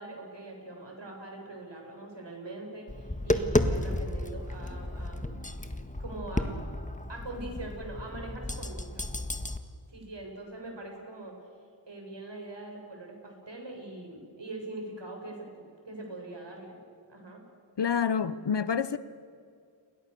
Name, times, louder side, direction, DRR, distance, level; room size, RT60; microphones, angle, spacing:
voice 1, 0.0-5.7 6.0-6.6 7.1-9.3 9.9-11.3 11.9-16.8 17.1-17.4, right 2 dB, 60° right, 7.4 m, -42 dB
Tap, 2.9-9.6, left 1 dB, 15° left, 1.5 m, -32 dB
voice 2, 17.8-19.0, left 7 dB, 55° left, 0.9 m, -27 dB
29.5 x 22.5 x 6.9 m
wide cardioid pair, 70°, 50 cm